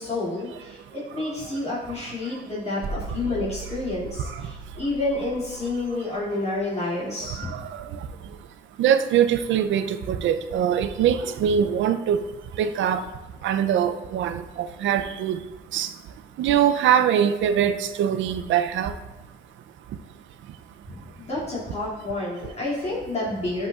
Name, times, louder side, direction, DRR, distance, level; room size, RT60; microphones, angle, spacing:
voice 1, 0.0-7.5 21.2-23.7, left 2 dB, 30° left, -9 dB, 2.5 m, -29 dB
sound 1, 2.8-5.9, right 2 dB, 50° right, 0.9 m, -37 dB
voice 2, 8.8-12.2 12.6-13.0 13.4-14.4 14.8-15.4 15.7-15.9 16.4-18.9, right 9 dB, 75° right, 10 dB, 0.5 m, -22 dB
11.5 x 5.3 x 2.4 m, 1.1 s
cardioid pair, 90°, 20 cm